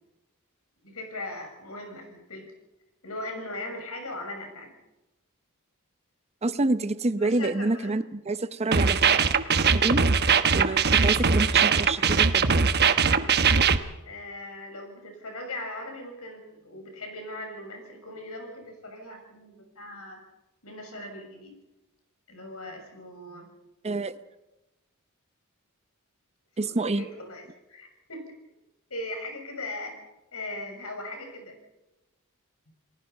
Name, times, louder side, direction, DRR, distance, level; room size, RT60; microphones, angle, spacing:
voice 1, 0.8-2.5 3.0-4.7 7.2-8.0 14.0-20.2 20.6-21.6 22.3-23.5 26.6-27.4 27.7-28.3 28.9-29.9 30.3-31.6, left 1 dB, 75° left, 4 dB, 6.6 m, -39 dB
voice 2, 6.4-9.0 9.7-10.1 10.5-12.6 23.8-24.1 26.6-27.0, right 2 dB, 30° right, 13 dB, 0.7 m, -27 dB
sound 1, 8.7-13.8, right 5 dB, 50° right, 1.1 m, -21 dB
29.0 x 19.5 x 5.6 m, 0.97 s
head